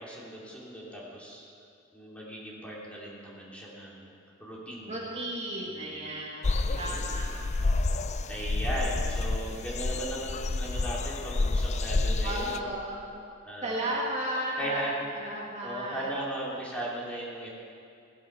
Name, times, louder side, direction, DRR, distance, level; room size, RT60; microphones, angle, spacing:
voice 1, 0.0-1.4 1.9-4.1 4.4-5.2 5.6-6.2 6.7-7.3 8.3-12.7 13.4-13.8 14.6-14.9 15.2-15.4 15.6-17.5, right 1 dB, 5° left, -5 dB, 2.9 m, -37 dB
voice 2, 4.8-7.7 12.2-13.1 13.6-14.8 15.2-16.1, right 1 dB, 35° right, -4 dB, 1.8 m, -34 dB
sound 1, 6.4-12.6, left 3 dB, 35° left, 0.4 m, -29 dB
16.5 x 10.0 x 6.0 m, 2.4 s
head